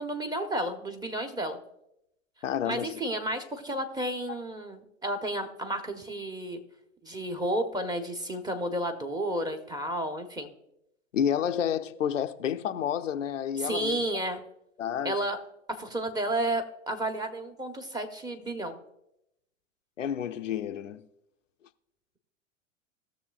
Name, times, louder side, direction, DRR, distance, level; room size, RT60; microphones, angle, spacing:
voice 1, 0.0-1.6 2.6-6.6 7.0-10.5 13.6-14.4 15.0-15.4 15.7-18.8, right 1 dB, 10° right, 0.9 m, -32 dB
voice 2, 2.4-3.0 11.1-14.0 14.8-15.2 20.0-21.0, left 9 dB, 85° left, 0.6 m, -30 dB
18.0 x 6.7 x 2.4 m
figure-of-eight pair, 95°, 37 cm